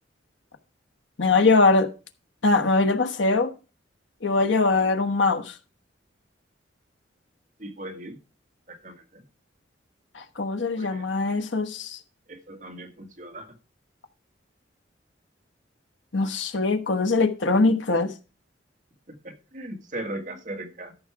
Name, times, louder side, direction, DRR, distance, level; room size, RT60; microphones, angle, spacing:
voice 1, 1.2-1.9 2.4-3.5 4.2-5.5 10.1-12.0 16.1-18.1, left 3 dB, 80° left, 1.2 m, -22 dB
voice 2, 7.6-8.2 8.7-9.3 10.7-11.1 12.3-13.5 19.1-20.9, right 1 dB, 40° right, 1.8 m, -38 dB
13.5 x 6.3 x 4.7 m
head